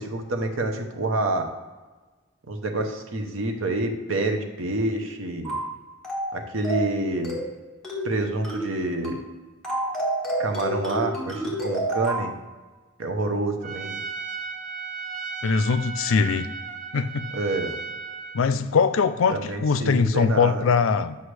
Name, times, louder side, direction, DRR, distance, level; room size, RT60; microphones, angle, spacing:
voice 1, 0.0-1.5 2.5-5.6 6.3-7.4 8.0-9.2 10.4-12.3 13.0-14.0 17.3-17.8 19.3-20.7, right 2 dB, 75° right, 5 dB, 0.9 m, -27 dB
sound 1, 5.4-5.7 6.0-6.3 6.6-6.9 7.2-7.5 7.8-8.1 8.4-8.7 9.0-9.3 9.6-12.3, right 1 dB, ahead, 1.5 m, -29 dB
Trumpet, 13.6-18.5, right 5 dB, 40° right, 0.5 m, -35 dB
voice 2, 15.4-16.5 16.9-17.3 18.3-21.2, left 5 dB, 75° left, 13 dB, 0.4 m, -22 dB
7.9 x 5.5 x 3.3 m, 1.3 s
head